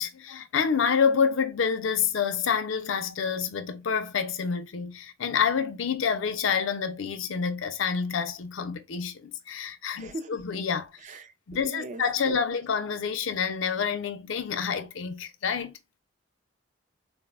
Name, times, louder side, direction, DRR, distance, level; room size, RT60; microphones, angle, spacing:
voice 1, 0.0-10.9 11.5-15.7, left 6 dB, 80° left, 0.5 m, -28 dB
voice 2, 10.0-10.4 11.0-12.4, right 2 dB, 40° right, 0.3 m, -40 dB
3.8 x 2.0 x 2.3 m
head